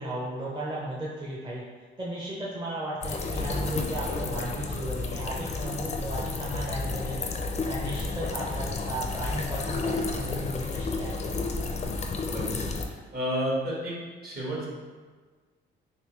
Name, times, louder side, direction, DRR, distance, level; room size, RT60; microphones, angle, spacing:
voice 1, 0.0-1.6 2.0-7.2 7.7-11.5, right 1 dB, 25° right, -6 dB, 0.6 m, -35 dB
sound 1, 3.0-12.8, left 3 dB, 35° left, 0.4 m, -31 dB
voice 2, 12.3-12.6 13.1-13.9 14.2-14.7, equal, 50° right, -5 dB, 1.3 m, -30 dB
3.3 x 2.9 x 3.1 m, 1.4 s
cardioid pair, 90°, 20 cm